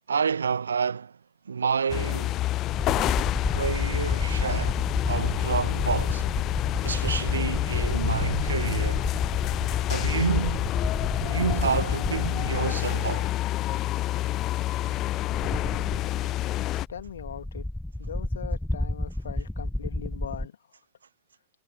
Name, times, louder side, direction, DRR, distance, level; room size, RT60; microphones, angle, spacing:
voice 1, 0.1-1.2 1.4-2.4 3.5-6.3 6.8-9.1 9.9-10.7 11.2-13.3, right 6 dB, 70° right, 1.6 m, -29 dB
sound 1, 1.9-16.9, left 15 dB, 35° left, 0.4 m, -28 dB
sound 2, 2.7-13.3 13.6-13.7 14.8-20.5, left 1 dB, 5° left, 1.0 m, -32 dB
voice 2, 16.9-17.7 18.0-20.5, left 8 dB, 65° left, 2.5 m, -40 dB
figure-of-eight pair, 90°, 0 cm